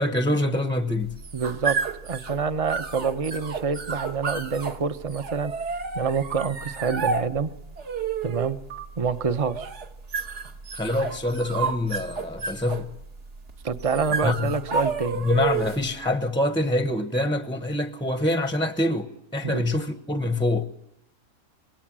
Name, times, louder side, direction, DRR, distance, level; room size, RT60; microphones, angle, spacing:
voice 1, 0.0-1.2 10.7-12.9 14.2-14.6 15.1-20.7, left 1 dB, 5° left, 0.9 m, -25 dB
sound 1, 1.0-15.9, right 5 dB, 50° right, 1.5 m, -31 dB
voice 2, 1.3-1.8 2.0-5.5 5.9-7.5 8.2-8.6 9.0-9.7 13.6-15.2 19.4-19.7, right 5 dB, 30° right, 0.8 m, -27 dB
sound 2, 3.9-4.1 6.3-6.5 8.7-8.9 11.1-11.6, right 5 dB, 85° right, 2.9 m, -39 dB
26.0 x 21.0 x 7.6 m
omnidirectional pair, 1.6 m